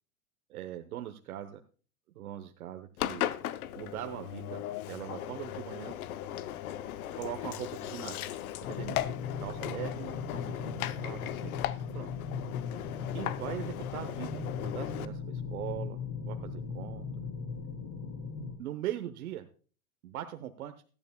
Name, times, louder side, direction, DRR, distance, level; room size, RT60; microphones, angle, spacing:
voice 1, 0.5-1.6 2.1-3.3 3.7-5.9 7.1-8.2 8.7-9.0 9.4-10.7 11.0-11.6 11.9-12.1 13.1-17.1 18.6-19.5 20.0-20.7, right 12 dB, 75° right, 6 dB, 1.0 m, -41 dB
Engine, 3.0-15.1, left 12 dB, 75° left, 0.8 m, -37 dB
sound 1, 8.6-18.5, left 5 dB, 55° left, 3.3 m, -38 dB
16.5 x 12.0 x 2.2 m, 0.39 s
hypercardioid pair, 115°, 44 cm